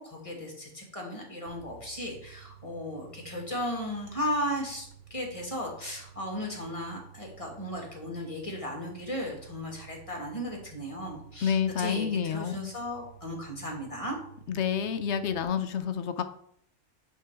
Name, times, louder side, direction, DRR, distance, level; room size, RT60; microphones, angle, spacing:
voice 1, 0.0-4.9 5.1-14.2, equal, 25° left, 0 dB, 1.8 m, -35 dB
sound 1, 1.5-15.4, right 8 dB, 40° right, 0.8 m, -52 dB
voice 2, 11.4-12.7 14.5-16.2, left 7 dB, 65° left, 9 dB, 0.8 m, -29 dB
10.5 x 3.8 x 4.6 m, 0.70 s
omnidirectional pair, 1.3 m